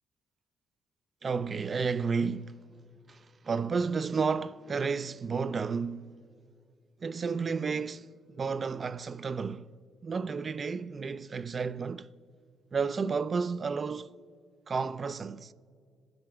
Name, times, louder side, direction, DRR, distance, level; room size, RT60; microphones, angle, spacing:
voice 1, 1.2-2.5 3.1-6.1 7.0-9.7 10.0-12.1 12.7-14.1 14.7-15.5, right 5 dB, 40° right, 0.3 m, -32 dB
21.5 x 7.9 x 3.5 m
cardioid pair, 90°, 0 cm